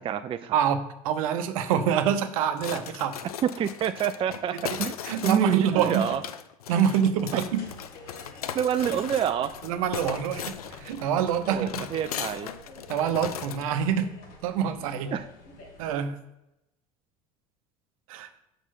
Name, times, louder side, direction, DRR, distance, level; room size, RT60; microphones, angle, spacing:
voice 1, 0.0-0.5 3.4-5.0 5.2-6.2 8.5-9.5 11.5-12.5 15.1-15.3, right 9 dB, 30° right, 10 dB, 0.4 m, -27 dB
voice 2, 0.5-3.2 4.5-4.8 5.0-6.1 6.7-7.6 9.6-11.8 12.9-14.1 14.4-15.1 15.8-16.2 18.1-18.3, right 8 dB, 65° right, 9 dB, 0.8 m, -26 dB
sound 1, 2.6-13.7, left 9 dB, 80° left, 0.5 m, -38 dB
sound 2, 7.2-16.1, left 2 dB, 50° left, 1.7 m, -49 dB
6.2 x 5.1 x 5.9 m, 0.85 s
figure-of-eight pair, 70°, 19 cm